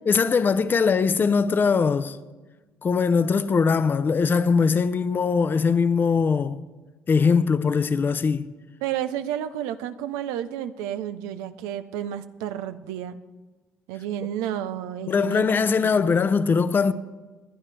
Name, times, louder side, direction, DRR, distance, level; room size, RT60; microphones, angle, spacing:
voice 1, 0.1-2.2 2.8-6.6 7.1-8.5 15.1-16.9, left 5 dB, 40° left, 0.7 m, -21 dB
voice 2, 8.8-13.2 13.9-15.5 15.8-16.0, right 10 dB, 85° right, 0.6 m, -31 dB
27.5 x 9.8 x 3.4 m
supercardioid pair, 65°, 5 cm